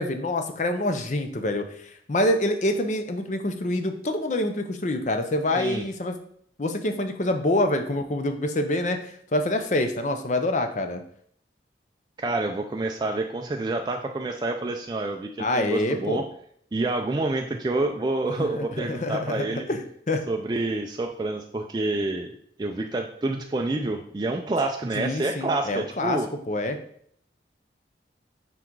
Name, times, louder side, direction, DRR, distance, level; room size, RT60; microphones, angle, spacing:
voice 1, 0.0-6.1 6.6-9.0 9.3-11.0 15.4-16.2 18.4-20.2 24.9-26.2 26.5-26.8, left 1 dB, 40° left, 7 dB, 0.6 m, -26 dB
voice 2, 12.2-16.2 16.7-19.6 20.3-26.3, right 2 dB, 25° right, 3 dB, 0.3 m, -28 dB
6.0 x 3.9 x 4.6 m, 0.64 s
head